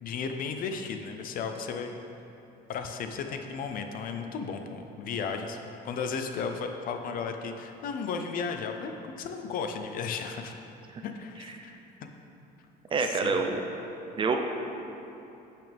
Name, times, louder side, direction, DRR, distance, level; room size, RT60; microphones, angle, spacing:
voice 1, 0.0-1.9 2.7-5.6 5.8-10.6 11.0-11.8 13.0-13.6, left 5 dB, 50° left, 6 dB, 0.6 m, -34 dB
voice 2, 12.9-13.6 14.2-14.4, right 4 dB, 30° right, 4 dB, 0.7 m, -26 dB
9.1 x 8.4 x 3.5 m, 2.9 s
cardioid pair, 140°, 18 cm